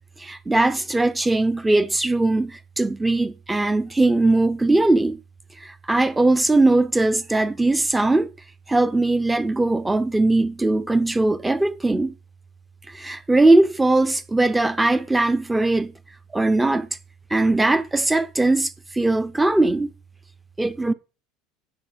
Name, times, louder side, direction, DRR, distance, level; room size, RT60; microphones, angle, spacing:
voice 1, 0.2-5.2 5.6-8.3 8.7-12.1 12.9-15.9 16.3-16.9 17.3-19.9 20.6-20.9, right 2 dB, 10° right, 0.8 m, -20 dB
7.7 x 6.8 x 7.2 m
supercardioid pair, 120°, 0 cm